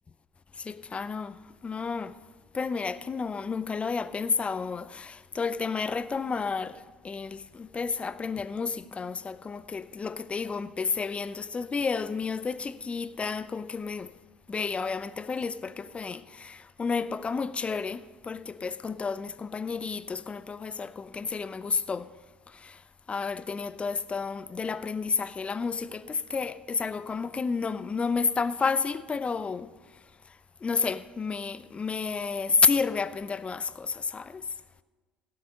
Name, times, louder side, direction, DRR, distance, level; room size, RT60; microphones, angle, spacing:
voice 1, 0.5-2.2 2.5-14.1 14.5-22.1 22.5-22.8 23.1-29.7 30.3-34.5, left 5 dB, 25° left, 0.5 m, -31 dB
17.0 x 7.7 x 5.4 m
figure-of-eight pair, 60°, 5 cm